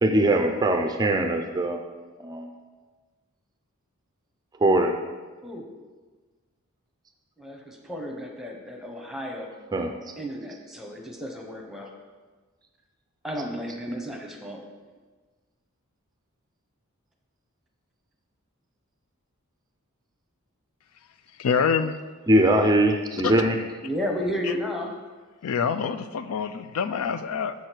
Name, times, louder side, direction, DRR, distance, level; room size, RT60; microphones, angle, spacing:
voice 1, 0.0-1.8 2.2-2.5 4.6-5.0 9.7-9.9 22.3-23.6, right 1 dB, 15° right, 4 dB, 0.4 m, -21 dB
voice 2, 7.4-9.5 10.2-11.9 13.2-14.6 23.8-24.9, equal, ahead, 1 dB, 0.9 m, -33 dB
voice 3, 21.4-22.0 23.1-23.3 24.4-24.5 25.4-27.5, left 6 dB, 70° left, 12 dB, 0.4 m, -26 dB
7.1 x 6.4 x 4.5 m, 1.3 s
head